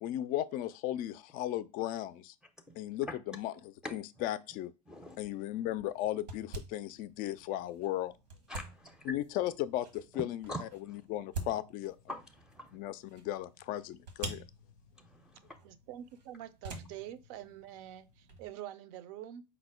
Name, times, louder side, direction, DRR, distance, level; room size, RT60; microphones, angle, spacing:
voice 1, 0.0-2.3 2.8-4.7 5.2-8.1 9.0-12.0 12.7-14.4, left 13 dB, 45° left, 0.4 m, -36 dB
voice 2, 4.9-5.2 8.5-9.1 10.1-10.2 10.5-10.6 10.9-11.0 12.1-12.8 15.0-15.6, equal, 5° right, 0.5 m, -43 dB
sound 1, 4.9-18.5, right 2 dB, 80° right, 1.2 m, -48 dB
voice 3, 15.6-19.4, right 12 dB, 55° right, 0.5 m, -46 dB
4.8 x 2.0 x 4.6 m
hypercardioid pair, 90°, 21 cm